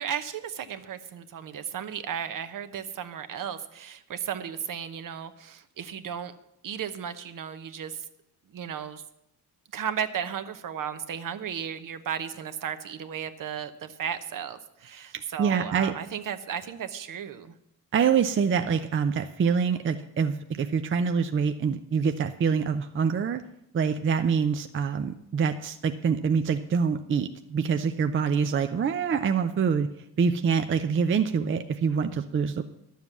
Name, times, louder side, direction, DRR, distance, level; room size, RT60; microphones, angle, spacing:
voice 1, 0.0-6.3 6.6-8.0 8.5-9.0 9.7-17.5, right 8 dB, 55° right, 10 dB, 0.9 m, -35 dB
voice 2, 15.1-15.9 17.9-23.4 23.7-29.9 30.2-32.6, right 6 dB, 35° right, 7 dB, 0.5 m, -25 dB
11.0 x 7.3 x 7.2 m, 0.79 s
cardioid pair, 120°, 38 cm